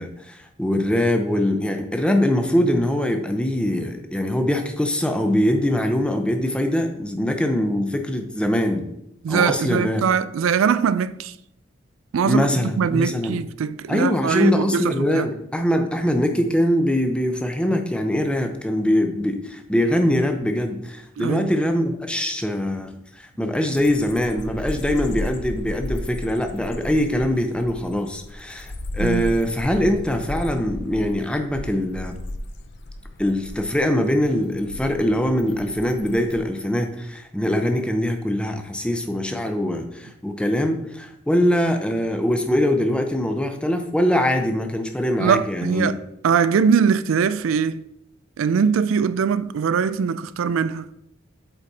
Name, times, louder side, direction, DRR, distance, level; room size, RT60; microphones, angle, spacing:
voice 1, 0.0-8.9 9.3-10.0 12.3-13.4 13.9-32.2 33.2-45.9, left 1 dB, 5° left, 0.6 m, -22 dB
voice 2, 9.2-11.3 12.1-15.3 21.2-21.5 29.0-29.3 45.2-46.0 46.2-47.8 48.4-50.9, right 6 dB, 85° right, 0.4 m, -21 dB
sound 1, 23.8-36.4, left 1 dB, 55° left, 0.6 m, -35 dB
8.1 x 4.2 x 4.1 m
head